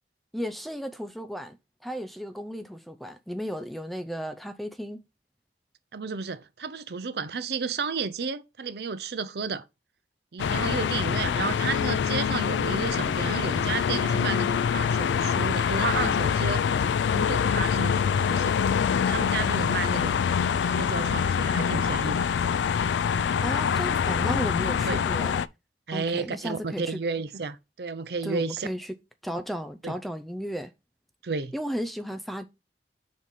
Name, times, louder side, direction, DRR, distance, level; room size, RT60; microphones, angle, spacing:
voice 1, 0.3-1.6 1.8-5.0 23.4-25.4 25.9-27.0 28.2-28.9 29.2-30.7 31.5-32.5, equal, ahead, 0.4 m, -34 dB
voice 2, 5.9-9.6 10.3-16.6 17.1-18.6 19.0-20.2 20.6-22.3 24.9-25.1 25.9-28.7 29.8-29.9 31.2-31.5, right 5 dB, 65° right, 0.6 m, -32 dB
sound 1, 10.4-25.5, left 7 dB, 85° left, 0.3 m, -25 dB
4.8 x 4.1 x 5.4 m
head